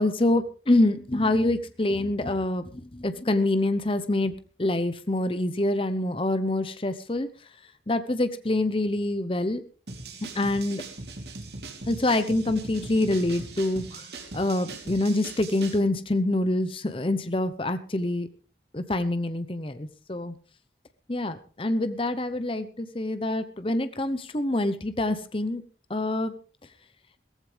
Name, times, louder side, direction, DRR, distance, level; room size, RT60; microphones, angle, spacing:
voice 1, 0.0-4.3 4.6-7.5 7.9-9.6 10.3-10.8 11.9-14.1 14.3-18.3 18.7-20.3 21.1-25.6 25.9-26.4, left 2 dB, 30° left, 11 dB, 0.9 m, -26 dB
sound 1, 9.9-15.8, right 3 dB, 65° right, 3.0 m, -40 dB
17.0 x 15.0 x 3.4 m, 0.37 s
head